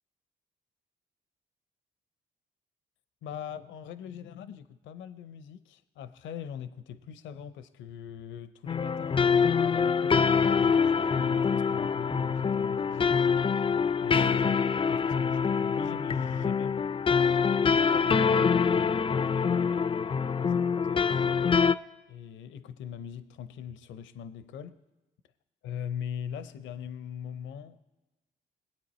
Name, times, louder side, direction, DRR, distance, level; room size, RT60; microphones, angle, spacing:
voice 1, 3.2-13.5 14.0-16.8 17.6-21.4 22.1-24.8 25.6-27.8, left 8 dB, 75° left, 0.6 m, -41 dB
sound 1, 8.7-21.8, left 6 dB, 25° left, 0.4 m, -25 dB
20.5 x 8.5 x 4.2 m
supercardioid pair, 60°, 20 cm